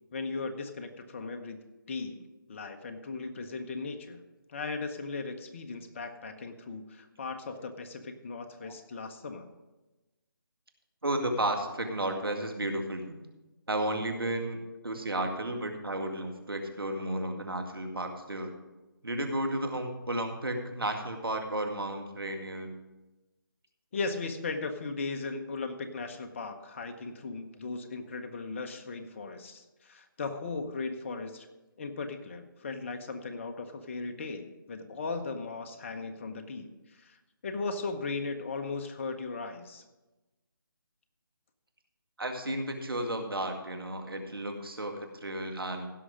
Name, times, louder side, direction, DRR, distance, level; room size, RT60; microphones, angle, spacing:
voice 1, 0.1-1.6 1.9-2.2 2.5-4.2 4.5-9.5 23.9-31.5 31.8-39.8, left 4 dB, 35° left, 7 dB, 1.0 m, -37 dB
voice 2, 11.0-13.2 13.7-18.5 19.0-22.7 42.2-45.9, right 1 dB, 85° right, 4 dB, 1.9 m, -33 dB
16.0 x 6.4 x 5.0 m, 1.1 s
figure-of-eight pair, 155°, 12 cm